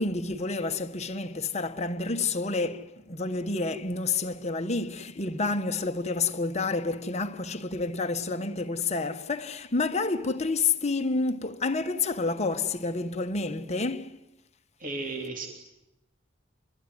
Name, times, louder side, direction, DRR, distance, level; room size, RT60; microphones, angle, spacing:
voice 1, 0.0-14.2, left 3 dB, 35° left, 1.3 m, -29 dB
voice 2, 14.8-15.5, right 3 dB, 40° right, 3.4 m, -34 dB
29.0 x 21.0 x 9.7 m
head